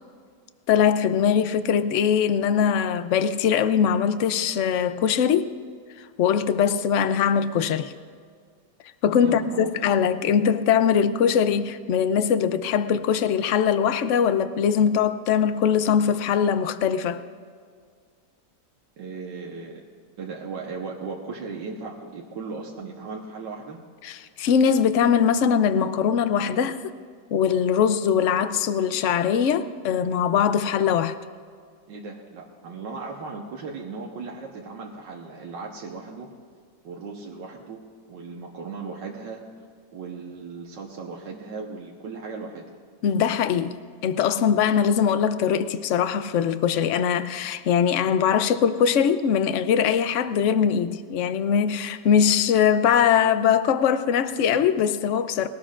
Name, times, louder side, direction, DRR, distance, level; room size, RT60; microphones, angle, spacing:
voice 1, 0.7-5.5 6.2-7.9 9.0-17.2 24.0-26.8 27.3-31.1 43.0-43.7 44.0-55.5, left 7 dB, 65° left, 0.7 m, -21 dB
voice 2, 9.2-9.7 19.0-19.8 20.2-23.8 31.9-36.3 36.8-37.8 38.1-39.4 39.9-42.7, right 4 dB, 90° right, 1.8 m, -37 dB
21.0 x 18.0 x 2.5 m
omnidirectional pair, 1.9 m